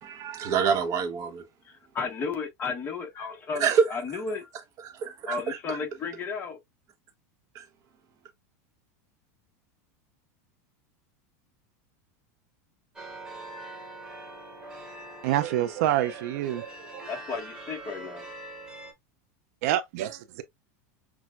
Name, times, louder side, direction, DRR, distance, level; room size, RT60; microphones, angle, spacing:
voice 1, 0.0-1.4 3.6-3.9 4.8-5.8 7.5-7.7, right 6 dB, 40° right, 1.0 m, -27 dB
voice 2, 1.6-4.5 5.3-6.6 17.1-18.3, left 5 dB, 25° left, 1.2 m, -33 dB
sound 1, 13.0-18.9, right 2 dB, 5° right, 1.4 m, -43 dB
voice 3, 15.2-17.2 19.6-20.4, right 13 dB, 65° right, 0.5 m, -27 dB
6.0 x 2.3 x 2.4 m
supercardioid pair, 140°, 9 cm